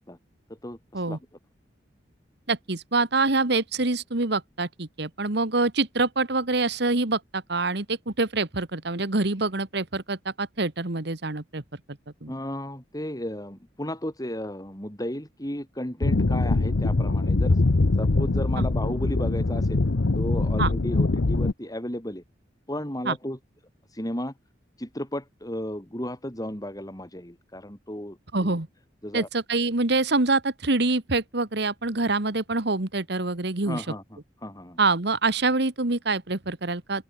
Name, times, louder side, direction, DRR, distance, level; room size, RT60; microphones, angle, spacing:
voice 1, 0.6-1.2 12.3-17.6 18.0-19.8 20.1-22.2 22.7-23.4 23.9-24.3 24.8-28.6 29.0-29.3 33.6-34.8, left 1 dB, 20° left, 6.5 m, -34 dB
voice 2, 2.5-11.6 12.2-12.3 18.6-18.7 20.6-20.7 23.1-23.2 28.3-28.7 29.1-33.8 34.8-37.0, right 3 dB, 65° right, 1.7 m, -25 dB
sound 1, 16.0-21.5, left 2 dB, 80° left, 0.8 m, -23 dB
open air
head